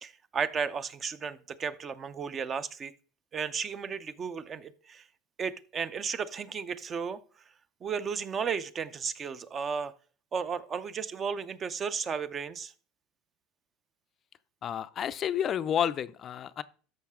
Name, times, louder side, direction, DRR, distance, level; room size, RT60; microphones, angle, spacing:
voice 1, 0.0-2.9 3.3-5.0 5.4-7.2 7.8-9.9 10.3-12.7, right 6 dB, 30° right, 0.6 m, -34 dB
voice 2, 14.6-16.6, left 9 dB, 35° left, 0.4 m, -30 dB
13.0 x 5.5 x 3.7 m
supercardioid pair, 135°, 0 cm